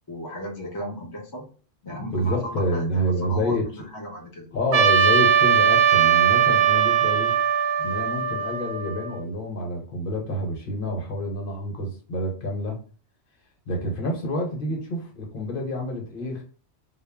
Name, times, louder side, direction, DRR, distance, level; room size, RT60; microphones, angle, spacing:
voice 1, 0.1-1.5 1.9-4.5, equal, 30° left, -1 dB, 0.4 m, -36 dB
voice 2, 1.8-3.6 4.5-7.3 7.8-12.8 13.7-16.4, equal, 55° left, 0 dB, 1.0 m, -28 dB
Trumpet, 4.7-9.2, right 8 dB, 75° right, 0.8 m, -20 dB
2.2 x 2.0 x 3.4 m, 0.40 s
omnidirectional pair, 1.1 m